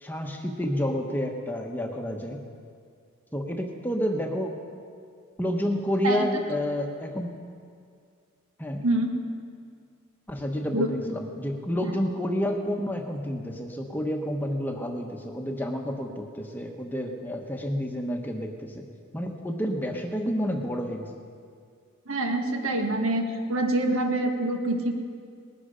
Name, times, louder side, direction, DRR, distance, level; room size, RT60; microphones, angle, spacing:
voice 1, 0.0-2.4 3.3-4.5 5.4-7.3 8.6-8.8 10.3-18.8 19.1-21.1, equal, 10° left, 2 dB, 1.0 m, -29 dB
voice 2, 22.1-23.2 23.5-24.9, right 1 dB, 75° right, 3 dB, 1.6 m, -25 dB
19.5 x 12.0 x 5.1 m, 2.2 s
head